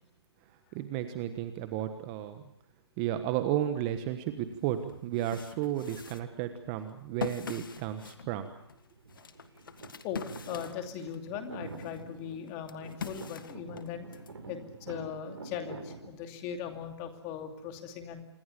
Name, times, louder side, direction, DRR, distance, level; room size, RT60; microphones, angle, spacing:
voice 1, 0.7-2.4 3.0-8.5, right 11 dB, 20° right, 9 dB, 1.4 m, -33 dB
sound 1, 4.4-4.5 4.9-11.3 11.7-14.3, left 6 dB, 50° left, 1.7 m, -43 dB
sound 2, 8.1-8.7 9.0-16.1, right 3 dB, 65° right, 6.8 m, -47 dB
voice 2, 10.0-18.3, left 8 dB, 20° left, 6 dB, 2.6 m, -39 dB
27.0 x 22.0 x 6.9 m, 0.71 s
figure-of-eight pair, 150°, 14 cm